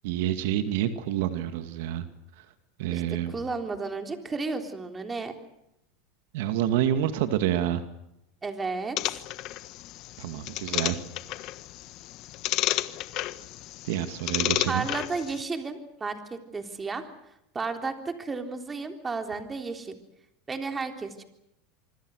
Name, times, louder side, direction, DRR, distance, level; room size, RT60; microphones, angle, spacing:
voice 1, 0.0-2.1 2.4-2.5 2.8-3.3 6.3-7.8 10.2-11.0 13.8-14.9, right 11 dB, 75° right, 9 dB, 2.3 m, -28 dB
voice 2, 2.9-5.3 8.4-9.0 14.7-17.1 17.5-20.0 20.5-21.2, right 4 dB, 15° right, 6 dB, 3.6 m, -33 dB
sound 1, 9.0-15.4, left 16 dB, 50° left, 1.4 m, -32 dB
25.5 x 25.5 x 6.5 m, 0.83 s
supercardioid pair, 130°, 0 cm